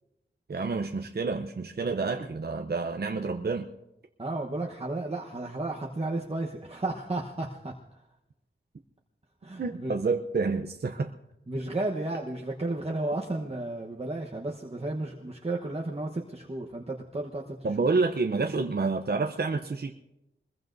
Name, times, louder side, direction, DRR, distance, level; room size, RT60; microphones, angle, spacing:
voice 1, 0.5-3.7 9.6-11.1 17.6-19.9, right 4 dB, 50° right, 4 dB, 0.7 m, -28 dB
voice 2, 4.2-7.7 9.4-9.9 11.5-17.4, right 2 dB, 30° right, -1 dB, 1.1 m, -33 dB
23.0 x 21.0 x 2.7 m, 0.93 s
wide cardioid pair, 85°, 21 cm